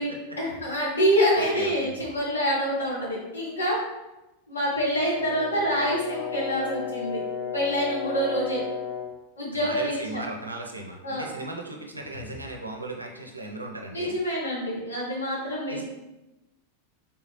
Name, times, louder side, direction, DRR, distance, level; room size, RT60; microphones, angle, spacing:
voice 1, 0.0-3.8 4.5-7.2 7.5-8.6 9.4-10.2 11.0-11.3 13.9-15.8, equal, 75° left, -5 dB, 1.1 m, -26 dB
voice 2, 1.3-1.9 9.5-14.2 15.7-15.8, right 2 dB, 85° right, 0 dB, 0.4 m, -37 dB
Brass instrument, 4.9-9.2, left 7 dB, 55° left, 0.5 m, -34 dB
3.2 x 2.8 x 2.9 m, 1.0 s
figure-of-eight pair, 90°, 0 cm